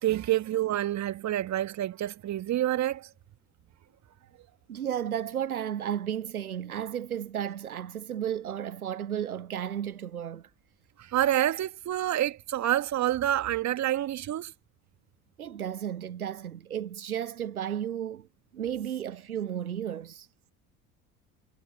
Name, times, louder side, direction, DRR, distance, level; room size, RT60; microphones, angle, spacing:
voice 1, 0.0-3.1 11.0-14.5, right 13 dB, 40° right, 1.9 m, -28 dB
voice 2, 4.7-10.5 15.4-18.3 18.5-20.3, right 9 dB, 85° right, 0.7 m, -33 dB
figure-of-eight pair, 60°, 43 cm